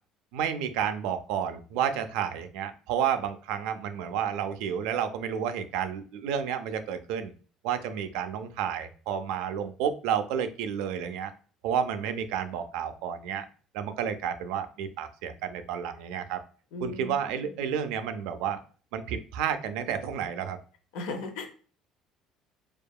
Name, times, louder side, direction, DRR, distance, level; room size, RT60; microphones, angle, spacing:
voice 1, 0.3-7.3 7.6-11.3 11.6-13.5 13.7-16.4 16.8-18.6 18.9-20.6, right 8 dB, 90° right, 9 dB, 0.3 m, -31 dB
voice 2, 16.7-17.2 20.9-21.5, left 3 dB, 90° left, 5 dB, 0.6 m, -36 dB
2.7 x 2.3 x 2.2 m, 0.40 s
cardioid pair, 160°, 0 cm